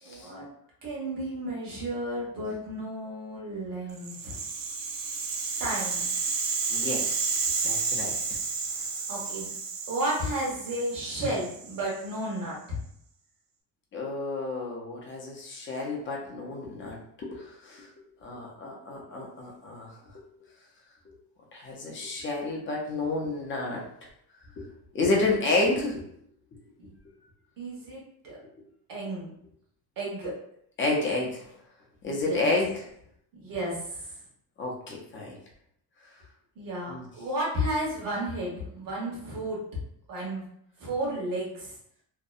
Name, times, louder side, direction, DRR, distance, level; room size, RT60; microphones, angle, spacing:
voice 1, 0.0-0.5 0.8-4.4 5.6-6.1 8.7-9.5 9.9-12.8 26.8-26.9 27.6-28.4 28.9-29.3 30.0-30.4 32.1-32.4 33.3-34.1 36.6-39.6 40.1-40.5 40.8-41.7, right 1 dB, 50° right, -4 dB, 1.0 m, -33 dB
Rattle (instrument), 4.0-12.2, right 5 dB, 80° right, 0.6 m, -31 dB
voice 2, 6.7-8.2 13.9-17.9 18.2-19.9 21.5-23.8 24.6-24.7 24.9-26.0 30.8-31.4 32.0-32.7 34.6-35.4 36.9-37.0, left 2 dB, 30° left, -2 dB, 0.4 m, -30 dB
2.7 x 2.0 x 2.3 m, 0.70 s
cardioid pair, 180°, 42 cm